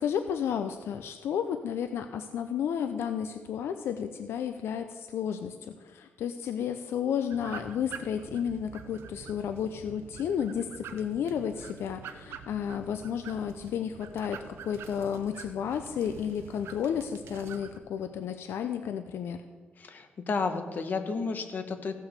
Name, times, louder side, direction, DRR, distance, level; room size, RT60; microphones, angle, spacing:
voice 1, 0.0-19.4, left 8 dB, 80° left, 8 dB, 0.6 m, -32 dB
sound 1, 7.3-17.8, right 7 dB, 85° right, 0.8 m, -46 dB
voice 2, 19.8-22.0, left 4 dB, 50° left, 7 dB, 1.2 m, -32 dB
15.5 x 6.1 x 6.7 m, 1.4 s
cardioid pair, 125°, 4 cm